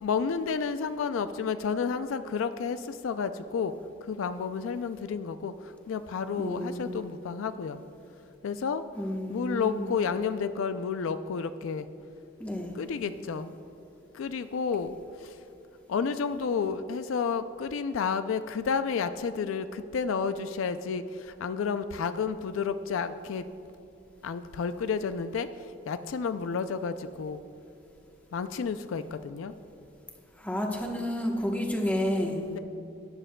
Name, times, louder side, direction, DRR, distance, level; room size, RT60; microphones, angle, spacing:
voice 1, 0.0-3.7 4.0-7.8 8.4-8.8 9.3-11.9 12.7-13.5 14.1-15.4 15.9-23.4 24.2-25.5 25.9-27.4 28.3-29.5 32.5-32.6, left 5 dB, 75° left, 11 dB, 0.4 m, -31 dB
voice 2, 6.4-7.1 9.0-9.9 12.4-12.7 30.4-32.4, equal, 5° left, 0 dB, 1.0 m, -30 dB
17.5 x 9.9 x 2.2 m, 2.8 s
head